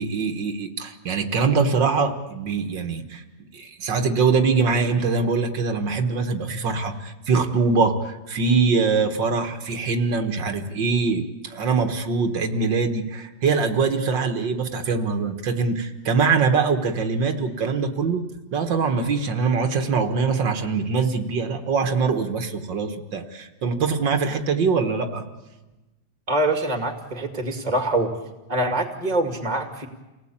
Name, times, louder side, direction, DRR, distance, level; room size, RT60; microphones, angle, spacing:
voice 1, 0.0-3.2 3.5-18.2 18.5-25.3, right 4 dB, 85° right, 6 dB, 2.3 m, -23 dB
voice 2, 26.3-28.2 28.5-29.9, right 1 dB, 20° right, 5 dB, 2.6 m, -24 dB
29.0 x 18.5 x 8.8 m, 1.1 s
omnidirectional pair, 1.9 m